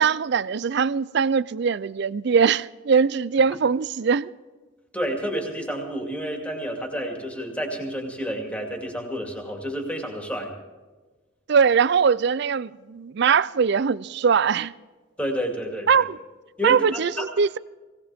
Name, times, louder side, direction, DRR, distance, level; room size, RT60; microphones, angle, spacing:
voice 1, 0.0-4.3 11.5-14.7 15.9-16.2 16.6-17.6, right 6 dB, 55° right, 0.4 m, -21 dB
voice 2, 4.9-10.5 15.2-16.0 16.6-17.3, equal, 5° left, 2.5 m, -30 dB
19.0 x 18.5 x 3.6 m
head